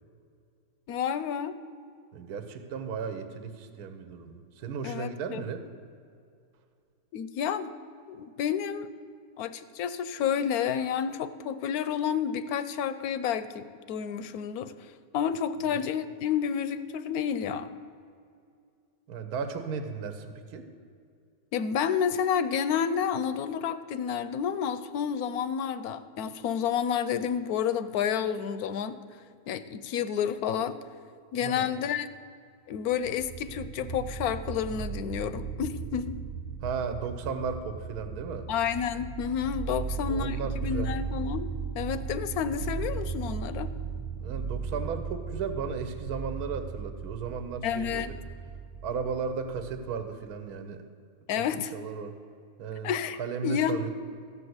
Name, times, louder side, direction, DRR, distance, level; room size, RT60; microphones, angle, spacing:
voice 1, 0.9-1.6 4.8-5.4 7.1-7.7 8.1-8.9 9.4-17.7 21.5-29.0 29.5-30.8 31.3-32.1 32.7-36.2 38.5-41.5 41.7-43.7 47.6-48.1 51.3-51.7 52.8-53.9, left 8 dB, 70° left, 12 dB, 1.0 m, -30 dB
voice 2, 2.1-5.6 15.7-15.8 19.1-20.6 31.4-31.7 36.6-38.5 39.8-40.9 44.2-48.1 48.8-50.8 51.4-51.5 51.7-52.1 52.6-52.9 53.2-53.9, right 5 dB, 70° right, 8 dB, 1.4 m, -35 dB
sound 1, 32.9-50.3, right 6 dB, 90° right, 1.2 m, -37 dB
14.5 x 5.4 x 7.9 m, 2.3 s
omnidirectional pair, 1.8 m